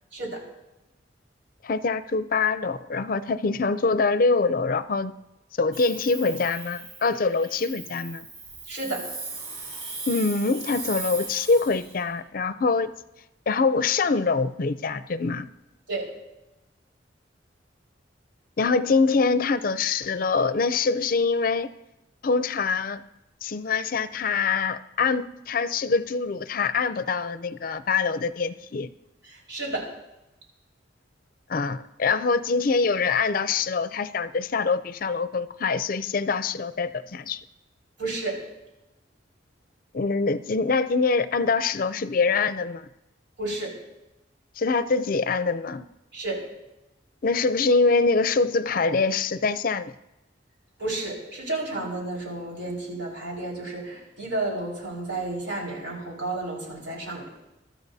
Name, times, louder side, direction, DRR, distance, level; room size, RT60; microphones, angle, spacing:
voice 1, 1.6-5.1 5.6-8.3 10.1-12.9 13.5-15.5 18.6-21.7 22.2-23.0 23.4-28.9 31.5-37.4 39.9-42.9 44.6-45.9 47.2-49.9, left 4 dB, 50° left, 13 dB, 0.5 m, -24 dB
Hiss, 5.7-12.0, right 3 dB, 35° right, 2.4 m, -38 dB
voice 2, 8.7-9.1 15.9-16.1 29.5-29.9 38.0-38.4 43.4-43.8 46.1-46.5 50.8-57.3, right 2 dB, 80° right, -3 dB, 4.7 m, -31 dB
23.0 x 13.0 x 2.7 m, 0.94 s
head